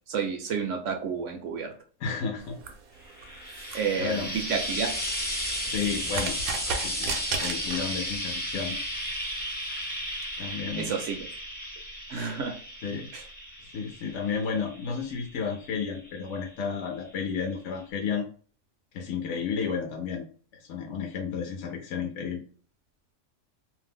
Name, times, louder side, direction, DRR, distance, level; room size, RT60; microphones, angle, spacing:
voice 1, 0.1-1.7 3.7-4.9 10.8-11.3 12.1-12.5 13.1-13.2, right 6 dB, 70° right, 4 dB, 0.8 m, -30 dB
voice 2, 2.0-2.6 3.9-4.3 5.6-6.4 6.8-8.8 10.4-11.0 12.8-13.1 13.6-18.3 18.9-20.3 20.5-22.4, left 6 dB, 65° left, 2 dB, 0.8 m, -32 dB
sound 1, 2.4-8.2, right 5 dB, 85° right, 1.0 m, -36 dB
Frying (food), 3.0-16.5 17.4-17.5, equal, 15° left, 0.3 m, -34 dB
2.6 x 2.0 x 3.4 m, 0.43 s
omnidirectional pair, 1.5 m